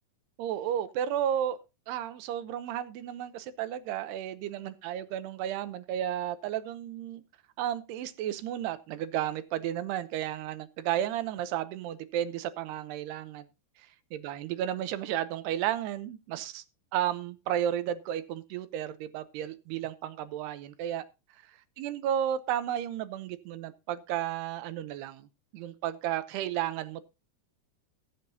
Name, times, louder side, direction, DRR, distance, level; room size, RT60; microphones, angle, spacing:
voice 1, 0.4-1.6 1.9-7.2 7.6-13.5 14.1-16.6 16.9-21.0 21.8-25.3 25.5-27.1, right 11 dB, 80° right, 2.8 m, -33 dB
22.5 x 7.5 x 2.7 m
omnidirectional pair, 4.9 m